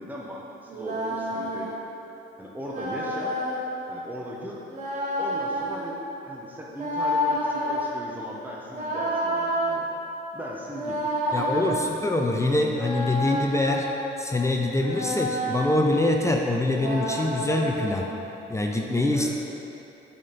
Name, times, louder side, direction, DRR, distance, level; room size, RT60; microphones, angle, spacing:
voice 1, 0.0-1.7 2.4-3.4 3.9-4.6 5.2-6.0 6.3-9.9 10.3-11.0 11.3-12.1 19.1-19.3, equal, 10° right, -3 dB, 0.9 m, -38 dB
sound 1, 0.7-1.8 2.7-3.6 4.7-5.9 6.7-7.9 8.7-9.8 10.7-11.8 12.7-14.1 14.7-15.8 16.7-18.1, equal, 40° right, 1.4 m, -29 dB
voice 2, 11.3-13.9 14.2-18.1 18.5-19.3, left 1 dB, 15° left, 1 dB, 0.5 m, -24 dB
7.3 x 4.3 x 5.2 m, 2.9 s
cardioid pair, 90°, 20 cm